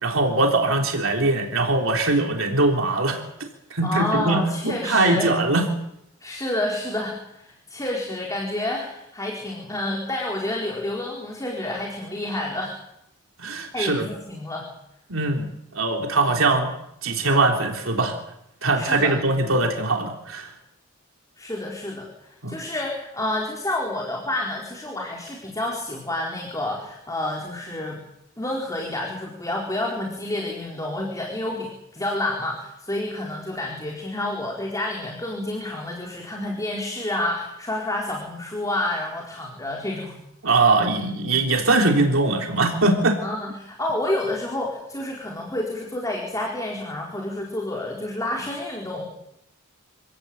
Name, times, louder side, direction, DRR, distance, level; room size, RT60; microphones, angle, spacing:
voice 1, 0.0-3.2 3.7-5.6 13.4-14.0 15.1-16.7 17.0-18.2 18.6-20.5 22.4-22.6 40.4-43.2, right 2 dB, 80° right, 1 dB, 3.6 m, -21 dB
voice 2, 3.8-5.3 6.2-12.8 13.7-14.7 18.7-19.1 21.4-28.0 28.4-40.2 43.2-49.1, left 1 dB, 15° left, -1 dB, 4.4 m, -29 dB
27.0 x 17.0 x 8.9 m, 0.81 s
head